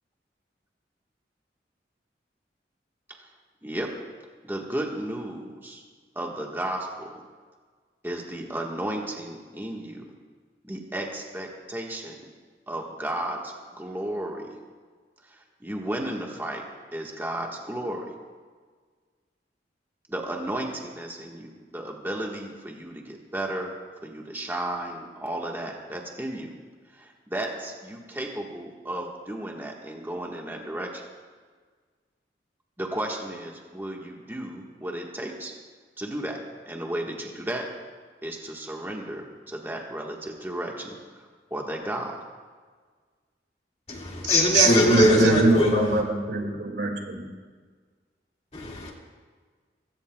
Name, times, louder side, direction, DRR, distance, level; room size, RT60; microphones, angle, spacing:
voice 1, 3.6-4.0 4.4-5.8 6.1-7.2 8.0-10.1 10.6-12.3 12.7-14.6 15.3-16.6 16.9-18.1 20.1-23.7 24.0-26.5 26.9-31.0 32.8-35.5 36.0-36.4 36.7-37.7 38.2-42.2, right 1 dB, 10° right, 0 dB, 1.4 m, -34 dB
voice 2, 43.9-46.0 48.5-48.9, left 1 dB, 35° left, -1 dB, 2.1 m, -21 dB
voice 3, 44.5-47.2, right 3 dB, 75° right, 2 dB, 2.2 m, -23 dB
21.5 x 16.5 x 2.3 m, 1.5 s
head